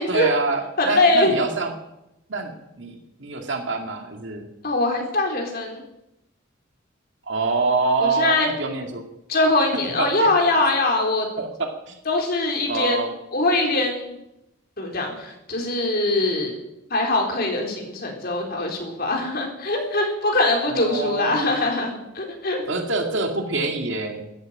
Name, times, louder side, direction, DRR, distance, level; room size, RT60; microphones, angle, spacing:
voice 1, 0.1-1.7 2.3-4.5 7.3-9.0 10.0-10.3 11.4-11.5 11.9-12.0 12.7-13.1 20.7-21.5 22.7-24.3, right 3 dB, 65° right, 3 dB, 2.3 m, -25 dB
voice 2, 0.8-1.3 4.6-5.8 8.0-8.5 9.3-11.3 12.1-14.1 14.8-16.5 16.9-22.6, left 2 dB, 50° left, 1 dB, 3.9 m, -22 dB
14.0 x 11.0 x 9.0 m, 0.87 s
head